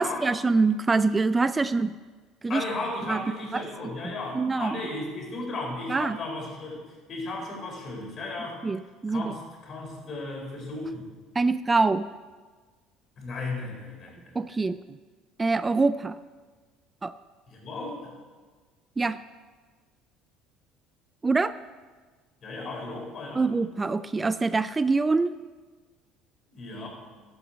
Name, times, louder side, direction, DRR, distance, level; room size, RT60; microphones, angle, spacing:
voice 1, 0.0-1.9 2.4-2.6 3.1-3.2 3.5-3.6 4.3-4.8 5.9-6.2 8.6-9.3 11.4-12.1 14.4-14.8 15.4-16.1 17.0-17.1 19.0-19.2 21.2-21.5 23.4-25.3, right 3 dB, 20° right, 15 dB, 0.3 m, -24 dB
voice 2, 2.5-8.6 9.1-11.1 13.2-14.4 17.5-18.2 22.4-23.5 26.5-26.9, left 2 dB, 45° left, -1 dB, 4.1 m, -35 dB
11.5 x 7.9 x 5.1 m, 1.4 s
supercardioid pair, 80°, 0 cm